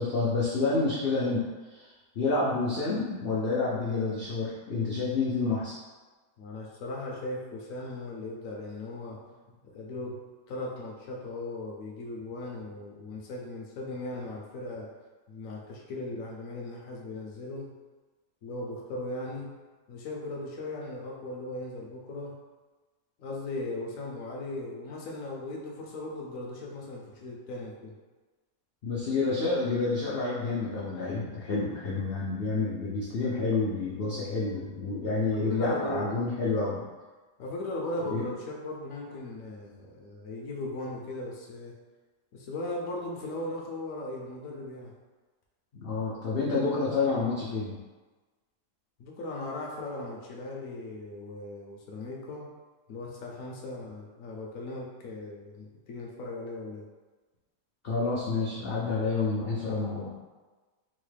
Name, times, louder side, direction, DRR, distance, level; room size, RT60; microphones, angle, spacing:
voice 1, 0.0-1.4 1.7-5.7 28.8-36.8 38.1-38.2 45.7-47.8 57.8-60.1, left 3 dB, 85° left, -7 dB, 0.5 m, -29 dB
voice 2, 6.4-9.2 9.6-10.2 10.5-14.9 15.3-17.7 18.4-19.5 19.9-22.4 23.2-27.9 35.3-36.1 37.4-41.8 42.3-44.9 49.0-52.5 52.9-56.9, left 2 dB, 65° left, -2 dB, 0.9 m, -38 dB
3.9 x 2.1 x 3.2 m, 1.3 s
omnidirectional pair, 1.7 m